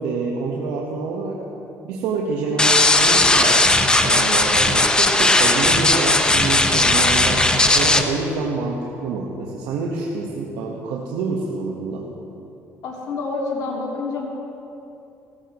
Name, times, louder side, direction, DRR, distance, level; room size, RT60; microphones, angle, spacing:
voice 1, 0.0-1.4 1.8-3.7 4.0-12.1, right 4 dB, 85° right, -2 dB, 1.2 m, -27 dB
sound 1, 2.6-8.0, left 2 dB, 15° left, 1.0 m, -17 dB
voice 2, 12.8-14.3, left 3 dB, 70° left, -3 dB, 3.1 m, -27 dB
17.5 x 14.5 x 3.0 m, 2.8 s
supercardioid pair, 85°, 6 cm